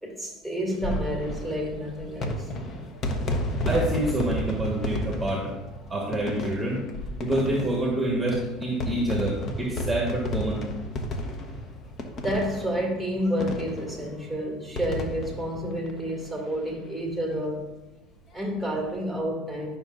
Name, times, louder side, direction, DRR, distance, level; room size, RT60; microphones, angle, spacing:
voice 1, 0.0-2.5 12.2-17.6 18.3-19.8, equal, 10° left, -2 dB, 2.4 m, -30 dB
sound 1, 0.7-16.7 17.0-17.1 17.3-17.4 18.7-19.0, left 1 dB, 40° left, 1.0 m, -33 dB
voice 2, 3.6-5.5 5.9-6.8 7.2-10.6, right 1 dB, 5° right, -1 dB, 1.4 m, -27 dB
11.0 x 5.8 x 2.6 m, 1.1 s
supercardioid pair, 115°, 0 cm